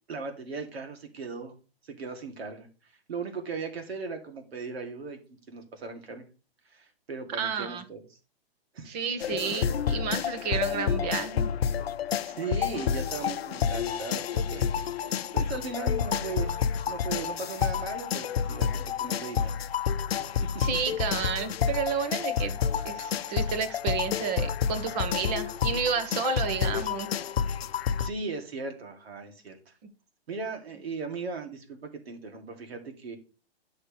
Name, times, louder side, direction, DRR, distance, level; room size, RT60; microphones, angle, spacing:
voice 1, 0.1-1.5 1.9-2.7 3.1-6.2 6.7-8.0 8.7-9.0 12.2-14.7 15.0-16.6 16.9-19.5 20.1-20.2 28.0-29.7 30.3-33.2, right 4 dB, 75° right, 5 dB, 2.5 m, -37 dB
voice 2, 7.3-7.8 8.9-11.5 20.6-22.6 22.8-27.2, right 6 dB, 40° right, 10 dB, 1.5 m, -31 dB
sound 1, 9.2-28.1, left 7 dB, 70° left, 0.7 m, -29 dB
11.0 x 6.5 x 3.3 m, 0.34 s
hypercardioid pair, 130°, 31 cm